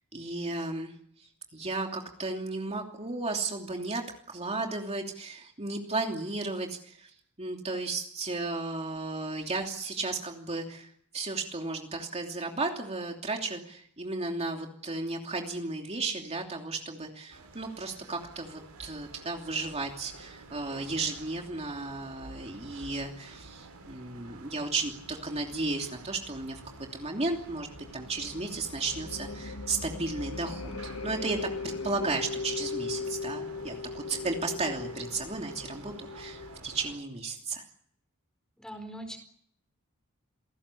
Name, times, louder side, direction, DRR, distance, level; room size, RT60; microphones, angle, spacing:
voice 1, 0.1-31.4 31.6-37.6, right 3 dB, 30° right, 2 dB, 3.0 m, -34 dB
sound 1, 17.3-37.0, right 2 dB, 75° right, 7.9 m, -50 dB
sound 2, 26.3-36.6, left 4 dB, 65° left, 1.2 m, -39 dB
voice 2, 38.6-39.2, equal, 5° left, 8 dB, 4.5 m, -41 dB
28.0 x 18.5 x 8.5 m, 0.67 s
head